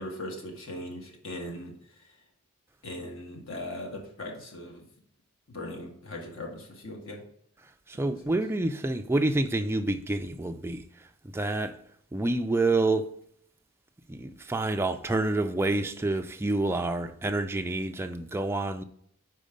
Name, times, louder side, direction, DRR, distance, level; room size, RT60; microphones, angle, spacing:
voice 1, 0.0-2.2 2.8-4.8 5.5-7.2 8.0-8.4, left 1 dB, 60° left, 1.4 m, -39 dB
voice 2, 7.9-10.8 11.3-11.8 12.1-13.1 14.1-18.8, right 2 dB, 10° right, 0.3 m, -28 dB
5.1 x 4.6 x 5.1 m
head